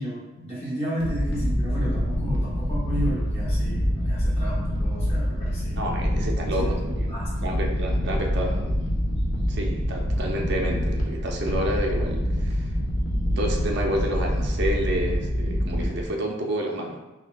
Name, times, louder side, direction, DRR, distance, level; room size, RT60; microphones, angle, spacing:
voice 1, 0.0-6.1 6.6-7.5, equal, 35° left, -7 dB, 1.1 m, -33 dB
sound 1, 1.0-16.1, equal, 65° left, 0.7 m, -26 dB
voice 2, 5.8-7.2 7.4-8.8 9.5-12.7 13.4-17.0, right 1 dB, 60° right, 1 dB, 0.5 m, -29 dB
5.5 x 2.2 x 2.2 m, 1.1 s
head